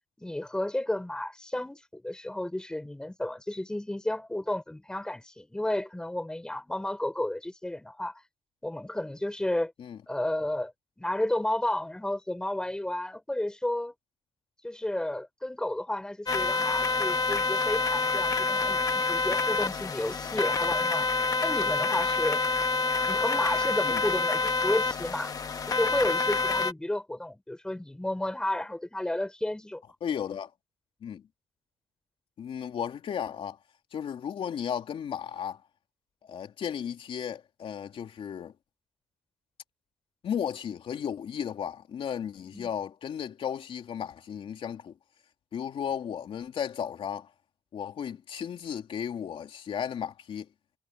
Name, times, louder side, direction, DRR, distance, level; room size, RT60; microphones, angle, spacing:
voice 1, 0.2-8.2 8.6-9.7 10.1-10.7 11.0-13.9 14.6-21.1 21.4-22.4 23.1-25.3 25.7-29.8 42.5-42.7, left 1 dB, 5° left, 5.1 m, -32 dB
sound 1, 16.3-26.7, left 4 dB, 30° left, 1.5 m, -27 dB
voice 2, 30.0-30.5 31.0-31.2 32.4-33.6 33.9-35.6 36.2-38.5 40.2-44.9 45.5-47.3 47.7-50.5, left 8 dB, 45° left, 3.2 m, -34 dB
cardioid pair, 150°, 12 cm